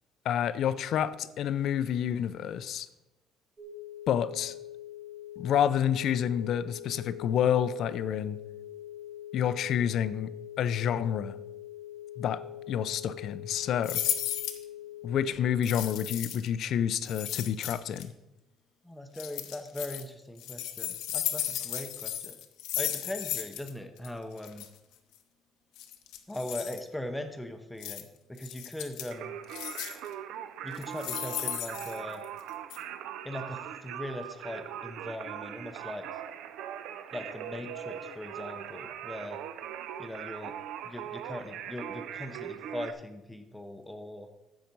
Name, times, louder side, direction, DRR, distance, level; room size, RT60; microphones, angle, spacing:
voice 1, 0.2-2.9 4.1-4.5 5.4-8.4 9.3-11.4 12.2-12.4 12.7-14.0 15.0-18.1, left 9 dB, 50° left, 14 dB, 0.5 m, -29 dB
sound 1, 3.6-15.3, left 11 dB, 20° right, 1.6 m, -44 dB
sound 2, 13.8-14.6 15.6-16.5 17.0-18.0 19.1-20.0 20.4-23.7 24.0-24.1 24.4-24.7 25.8-26.8 27.8-28.0 28.4-29.1 29.5-30.1 30.7-32.4 32.7-32.8, left 12 dB, 85° left, 1.0 m, -35 dB
voice 2, 18.8-22.4 22.8-24.7 26.3-29.4 30.6-32.2 33.2-36.1 37.1-39.4 40.0-40.5 40.8-44.3, left 1 dB, 5° left, 6 dB, 0.6 m, -40 dB
Singing, 29.1-42.9, right 9 dB, 70° right, 0.6 m, -40 dB
10.5 x 7.4 x 5.3 m, 0.98 s
cardioid pair, 170°, 0 cm